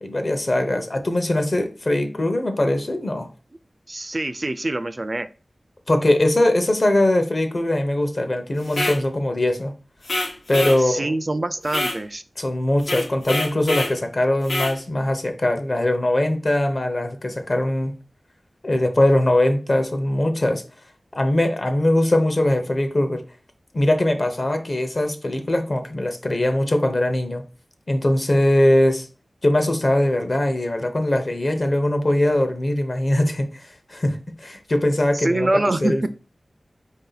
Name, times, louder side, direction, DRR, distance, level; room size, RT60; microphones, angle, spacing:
voice 1, 0.0-3.3 5.9-9.7 10.5-11.1 12.4-17.9 18.6-20.6 21.1-23.2 23.7-27.4 27.9-29.1 29.4-33.4 33.9-35.5 35.8-36.1, left 1 dB, 45° left, 6 dB, 0.7 m, -21 dB
voice 2, 3.9-5.3 10.8-12.2 35.1-36.1, right 2 dB, 35° right, 11 dB, 0.3 m, -24 dB
sound 1, 8.6-9.0 10.0-10.8 11.7-12.0 12.8-14.0 14.4-14.8, left 1 dB, 85° left, 0.9 m, -26 dB
4.8 x 2.7 x 3.9 m, 0.36 s
wide cardioid pair, 75°, 0 cm